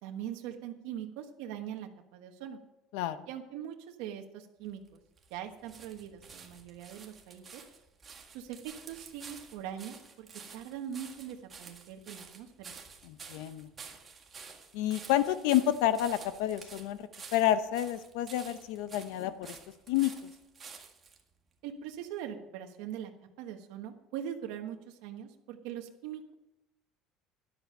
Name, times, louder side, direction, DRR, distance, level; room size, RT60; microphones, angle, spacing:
voice 1, 0.0-2.6 3.3-5.0 5.3-7.6 8.3-10.3 10.5-12.7 21.6-23.1 23.4-26.3, right 10 dB, 80° right, 3 dB, 1.3 m, -42 dB
voice 2, 2.9-3.3 13.0-13.7 14.7-19.6 19.9-20.1, left 12 dB, 85° left, 12 dB, 0.8 m, -29 dB
sound 1, 4.6-21.2 21.9-22.0, right 5 dB, 25° right, 1.8 m, -50 dB
12.5 x 11.0 x 5.5 m, 0.92 s
cardioid pair, 155°, 0 cm